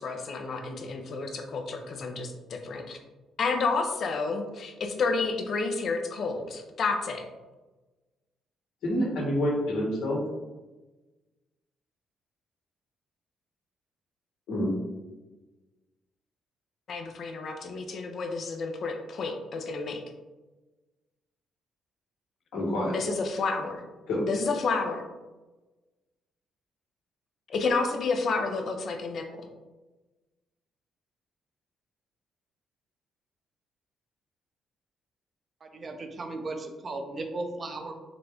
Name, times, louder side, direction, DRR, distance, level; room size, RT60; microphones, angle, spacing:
voice 1, 0.0-3.0 3.4-7.3 16.9-20.0 22.9-23.8 24.3-25.0 27.5-29.5, left 4 dB, 55° left, 5 dB, 0.5 m, -30 dB
voice 2, 8.8-10.2 14.5-14.7 22.5-22.9 24.1-24.2, left 1 dB, 85° left, -3 dB, 1.2 m, -27 dB
voice 3, 35.6-37.9, right 2 dB, 40° right, 5 dB, 0.5 m, -36 dB
3.8 x 2.2 x 3.4 m, 1.2 s
cardioid pair, 90°, 0 cm